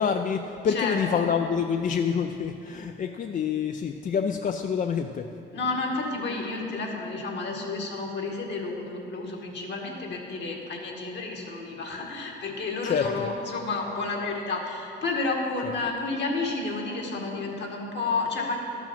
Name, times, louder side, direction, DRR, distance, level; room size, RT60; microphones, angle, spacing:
voice 1, 0.0-5.3 12.8-13.3, left 7 dB, 40° left, 6 dB, 0.4 m, -27 dB
voice 2, 0.7-1.3 5.5-18.6, left 3 dB, 60° left, 0 dB, 1.7 m, -31 dB
12.0 x 6.2 x 5.8 m, 2.8 s
cardioid pair, 90°, 20 cm